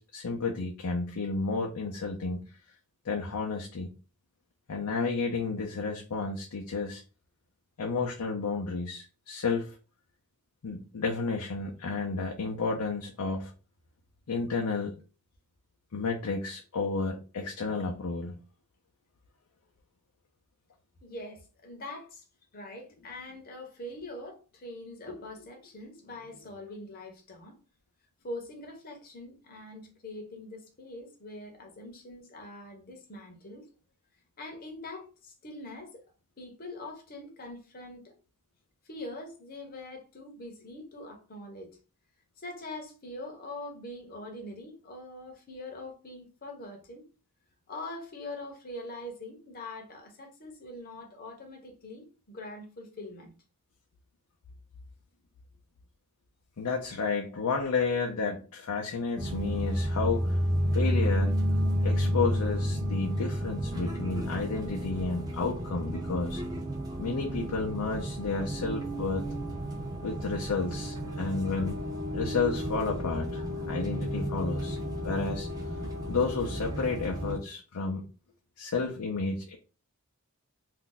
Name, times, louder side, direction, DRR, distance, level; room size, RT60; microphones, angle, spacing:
voice 1, 0.0-2.4 3.0-3.9 4.7-7.0 7.8-9.7 10.6-13.5 14.3-15.0 15.9-18.4 56.6-60.4 60.7-61.4 61.8-66.4 67.0-69.2 70.0-71.7 72.1-74.8 75.0-75.5 76.1-78.0 78.6-79.6, left 4 dB, 85° left, 0.5 m, -31 dB
voice 2, 21.0-22.2 22.5-27.5 28.2-33.7 34.4-36.0 36.4-38.1 38.8-41.8 42.4-47.0 47.7-53.3 57.3-57.4 57.8-57.9, left 1 dB, 40° left, 0.7 m, -43 dB
sound 1, 59.2-77.4, equal, 15° right, 0.7 m, -31 dB
2.6 x 2.2 x 3.8 m
head